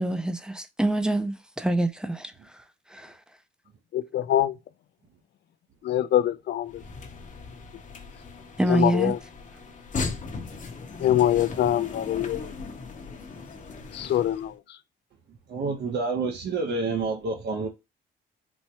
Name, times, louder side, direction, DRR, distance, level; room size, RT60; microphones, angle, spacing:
voice 1, 0.0-2.3 2.9-3.1 8.6-9.1, right 1 dB, 5° right, 0.6 m, -26 dB
voice 2, 3.9-4.5 5.8-6.7 8.7-9.2 11.0-12.5 13.9-14.5, left 12 dB, 60° left, 0.4 m, -24 dB
sound 1, 6.6-14.5, left 4 dB, 40° left, 0.9 m, -37 dB
voice 3, 15.5-17.7, right 4 dB, 60° right, 0.9 m, -28 dB
4.4 x 2.2 x 2.9 m
cardioid pair, 90°, 20 cm